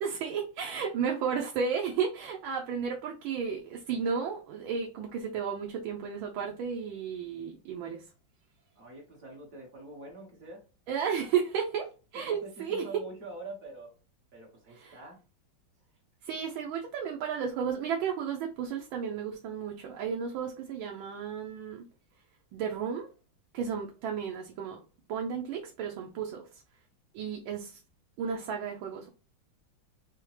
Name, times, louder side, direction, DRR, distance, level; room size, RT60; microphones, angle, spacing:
voice 1, 0.0-8.0 10.9-11.9 12.1-12.9 14.8-15.0 16.2-21.9 22.5-23.1 23.5-24.8 25.1-26.5 27.1-27.8 28.2-29.1, right 7 dB, 85° right, 1 dB, 1.5 m, -33 dB
voice 2, 8.7-10.6 12.1-13.9 14.3-15.2, right 2 dB, 50° right, -1 dB, 1.3 m, -45 dB
4.6 x 3.5 x 3.2 m, 0.35 s
omnidirectional pair, 2.2 m